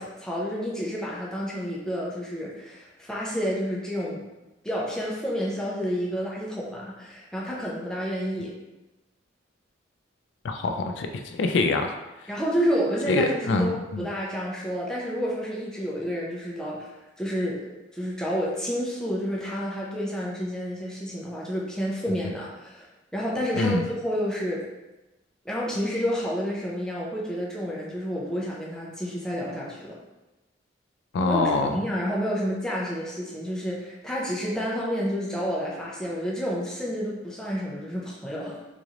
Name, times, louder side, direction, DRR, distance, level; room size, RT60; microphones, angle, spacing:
voice 1, 0.0-4.2 4.6-8.5 12.3-17.6 17.9-22.9 23.1-24.6 25.4-30.0 31.2-38.6, equal, 5° left, -5 dB, 0.6 m, -30 dB
voice 2, 10.4-12.0 13.1-14.1 23.5-23.9 31.1-31.8, left 3 dB, 70° left, 5 dB, 0.3 m, -25 dB
4.0 x 3.1 x 2.5 m, 1.1 s
head